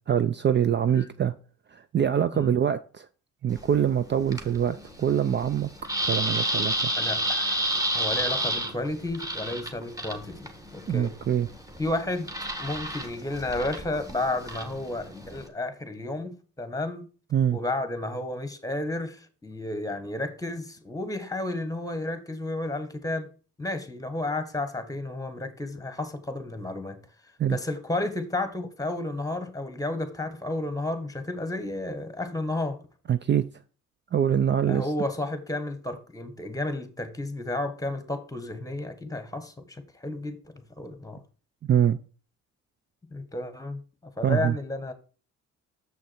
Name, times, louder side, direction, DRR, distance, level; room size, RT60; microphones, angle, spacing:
voice 1, 0.1-1.3 1.7-3.1 3.4-5.7 6.1-6.9 10.9-11.5 17.3-17.6 27.4-27.6 33.1-33.4 34.1-34.9 41.6-42.0 44.2-44.5, right 9 dB, 35° right, 0.5 m, -24 dB
sound 1, 3.5-15.5, right 1 dB, 10° right, 1.9 m, -31 dB
voice 2, 7.0-7.6 7.9-11.2 11.8-12.3 12.6-17.1 17.5-23.3 23.6-32.8 34.7-41.2 43.1-43.8 44.2-44.9, left 2 dB, 10° left, 1.4 m, -32 dB
7.1 x 6.2 x 4.4 m
cardioid pair, 90°, 30 cm